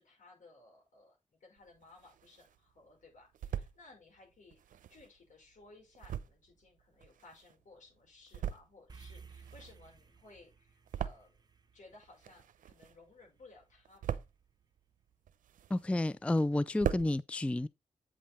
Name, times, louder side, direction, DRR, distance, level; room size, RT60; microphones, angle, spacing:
voice 1, 0.0-11.4 11.7-14.2, left 3 dB, 70° left, 5.6 m, -59 dB
sound 1, 1.6-2.6 3.0-3.8 4.5-7.7 8.1-9.0 9.2-11.7 11.9-13.2 13.5-14.5 15.0-16.1 16.4-16.5 16.7-17.1, right 10 dB, 85° right, 0.6 m, -40 dB
sound 2, 8.9-13.4, right 5 dB, 30° right, 1.3 m, -56 dB
voice 2, 15.7-17.7, left 1 dB, 10° left, 0.4 m, -30 dB
8.4 x 5.6 x 4.2 m
cardioid pair, 65°, 13 cm